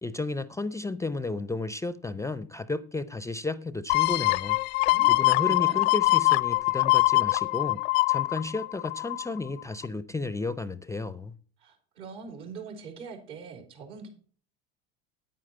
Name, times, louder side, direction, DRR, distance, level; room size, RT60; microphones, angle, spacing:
voice 1, 0.0-4.6 5.1-7.8 8.1-11.4, left 3 dB, 10° left, 0.4 m, -33 dB
sound 1, 3.9-9.4 9.8-9.9, left 23 dB, 70° left, 0.5 m, -23 dB
voice 2, 4.8-5.8 11.6-14.1, right 5 dB, 70° right, 3.8 m, -43 dB
9.3 x 9.1 x 4.3 m
supercardioid pair, 95°, 29 cm